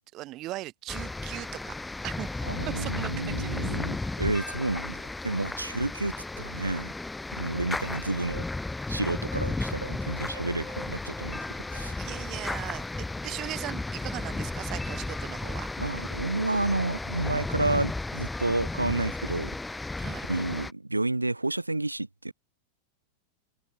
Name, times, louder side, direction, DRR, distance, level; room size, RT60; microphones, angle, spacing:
voice 1, 0.1-1.8 2.0-2.3 2.7-3.7 12.0-15.7 20.0-20.3, right 17 dB, 35° right, 0.8 m, -39 dB
sound 1, 0.9-20.7, left 2 dB, 5° left, 0.3 m, -34 dB
voice 2, 2.4-6.9 7.3-8.4 8.9-11.4 11.7-12.0 15.8-19.5 20.3-22.3, right 2 dB, 85° right, 0.7 m, -30 dB
figure-of-eight pair, 90°, 0 cm